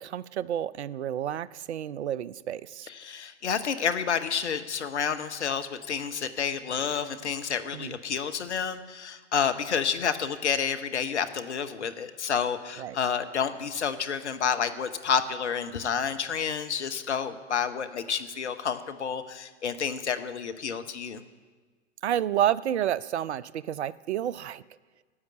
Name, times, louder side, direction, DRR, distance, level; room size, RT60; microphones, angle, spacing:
voice 1, 0.0-2.9 7.7-8.0 12.8-13.0 22.0-24.6, right 10 dB, 65° right, 20 dB, 0.5 m, -30 dB
voice 2, 2.9-21.2, left 7 dB, 70° left, 10 dB, 0.9 m, -29 dB
9.6 x 8.1 x 9.5 m, 1.4 s
figure-of-eight pair, 100°, 36 cm